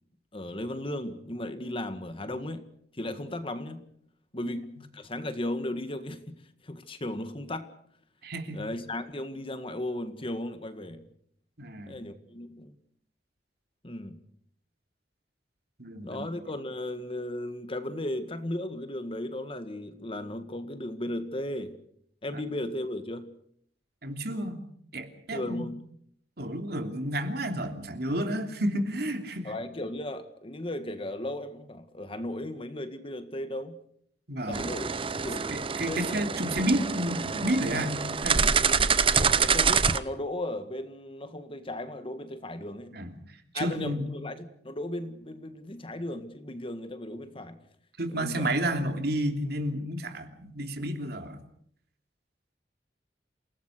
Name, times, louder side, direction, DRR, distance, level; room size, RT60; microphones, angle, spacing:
voice 1, 0.3-2.7 2.9-3.8 4.3-7.7 8.5-11.1 11.9-12.7 13.8-14.2 16.0-21.8 22.2-23.4 25.3-25.8 29.4-33.8 34.4-34.9 35.2-35.6 35.9-36.3 38.6-38.8 39.4-43.0 43.5-47.6 48.1-48.5, left 1 dB, 30° left, 1.8 m, -36 dB
voice 2, 8.2-8.7 11.6-12.0 15.8-16.2 22.3-22.4 24.0-24.6 24.9-25.6 26.4-29.5 34.3-34.6 35.5-38.6 39.2-39.3 42.9-43.1 43.5-44.1 48.0-51.4, right 1 dB, 65° right, 3.1 m, -31 dB
sound 1, 34.5-40.0, right 6 dB, 30° right, 0.8 m, -26 dB
28.5 x 18.5 x 6.6 m
head